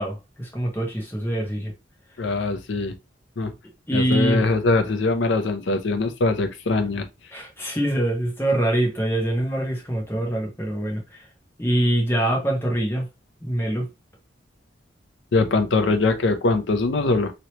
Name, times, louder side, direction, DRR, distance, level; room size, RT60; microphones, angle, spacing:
voice 1, 0.0-1.7 3.9-4.4 7.3-11.2 11.6-13.1 13.4-13.9, right 1 dB, 10° left, 1.0 m, -24 dB
voice 2, 2.2-2.9 3.4-3.5 3.9-7.1 15.3-17.3, left 3 dB, 70° left, 0.6 m, -22 dB
3.1 x 2.8 x 2.9 m
head